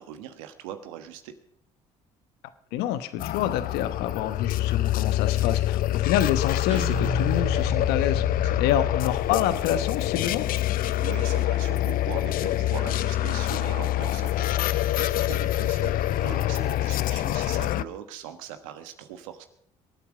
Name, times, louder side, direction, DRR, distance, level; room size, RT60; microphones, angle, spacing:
voice 1, 0.0-1.3 8.4-8.6 11.0-19.5, right 10 dB, 85° right, 9 dB, 1.3 m, -40 dB
voice 2, 2.7-10.5, left 11 dB, 75° left, 11 dB, 1.1 m, -27 dB
sound 1, 3.2-17.8, left 14 dB, 60° left, 0.5 m, -26 dB
Guitar, 6.7-9.9, right 2 dB, 50° right, 2.2 m, -34 dB
22.5 x 8.7 x 5.0 m, 0.70 s
hypercardioid pair, 65°, 17 cm